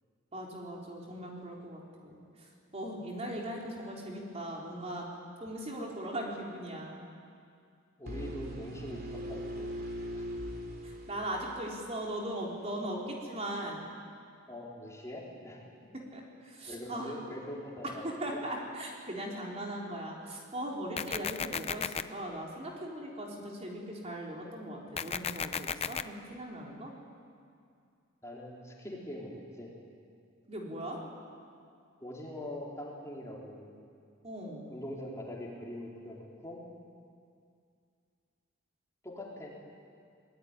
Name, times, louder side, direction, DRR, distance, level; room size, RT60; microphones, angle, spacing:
voice 1, 0.3-2.2 2.7-5.1 5.4-7.0 10.8-13.8 16.1-17.1 18.0-26.9 30.5-31.0 34.2-34.7, right 1 dB, 30° right, -2 dB, 3.8 m, -39 dB
voice 2, 8.0-9.7 10.1-10.4 14.5-15.6 16.7-18.4 28.2-29.7 32.0-33.7 34.7-36.6 39.0-39.5, left 1 dB, 15° left, -3 dB, 4.1 m, -43 dB
sound 1, 8.1-11.9, equal, 50° right, 3.6 m, -40 dB
sound 2, 21.0-22.0 25.0-26.0, left 6 dB, 30° left, 0.6 m, -34 dB
25.0 x 19.5 x 9.8 m, 2.3 s
head